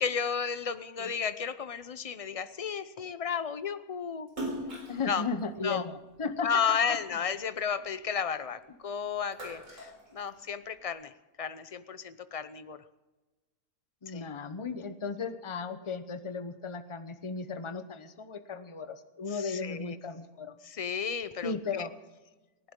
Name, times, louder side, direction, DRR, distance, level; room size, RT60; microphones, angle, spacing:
voice 1, 0.0-4.3 5.1-5.2 5.6-5.8 6.4-11.1 11.4-12.8 14.1-14.3 19.3-20.0 20.6-21.9, left 6 dB, 45° left, 12 dB, 0.4 m, -33 dB
Splash splatter, 4.3-6.8 7.3-8.7 9.1-10.8, right 1 dB, 55° right, 4.4 m, -41 dB
voice 2, 4.9-7.0 14.0-20.5 21.4-21.9, left 4 dB, 25° left, 9 dB, 0.8 m, -36 dB
28.0 x 12.0 x 3.8 m, 1.2 s
omnidirectional pair, 1.6 m